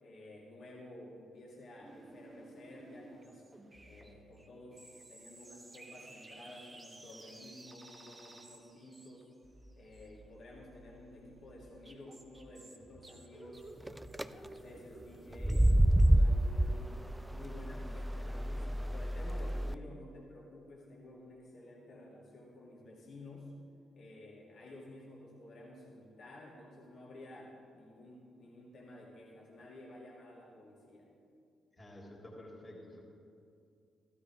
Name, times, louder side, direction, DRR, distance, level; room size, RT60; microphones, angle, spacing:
voice 1, 0.0-3.4 3.8-9.3 9.8-13.7 14.1-17.0 17.3-23.5 23.9-31.1, left 1 dB, 60° left, -3 dB, 2.8 m, -52 dB
sound 1, 1.8-16.1, right 2 dB, 25° right, 1.4 m, -55 dB
sound 2, 13.9-14.2 15.3-19.7, right 1 dB, 10° right, 0.4 m, -28 dB
voice 2, 31.8-33.1, left 1 dB, 30° left, -2 dB, 3.6 m, -50 dB
14.5 x 13.0 x 3.7 m, 2.5 s
hypercardioid pair, 40°, 0 cm